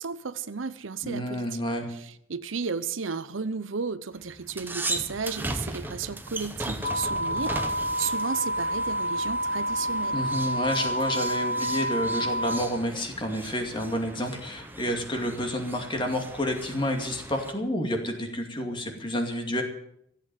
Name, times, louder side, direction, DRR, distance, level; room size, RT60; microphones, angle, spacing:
voice 1, 0.0-1.6 1.9-10.2, right 5 dB, 80° right, 14 dB, 0.8 m, -34 dB
voice 2, 1.0-1.9 10.1-19.6, equal, 25° left, 4 dB, 2.4 m, -29 dB
sound 1, 4.2-17.5, right 2 dB, 10° right, 1.2 m, -38 dB
sound 2, 6.8-12.6, equal, 45° left, 1.4 m, -29 dB
15.0 x 8.5 x 9.2 m, 0.73 s
head